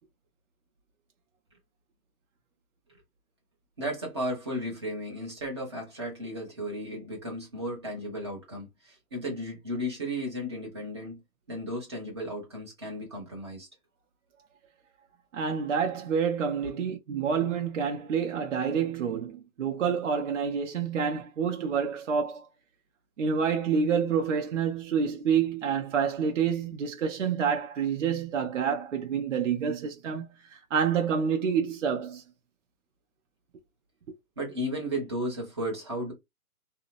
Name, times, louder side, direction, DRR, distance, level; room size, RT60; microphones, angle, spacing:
voice 1, 3.8-11.2 11.5-13.7 16.6-16.7 34.4-36.1, equal, 20° right, 0.7 m, -34 dB
voice 2, 15.3-22.5 23.2-32.2, right 6 dB, 55° right, 0.6 m, -28 dB
2.7 x 2.1 x 2.5 m
hypercardioid pair, 165°, 44 cm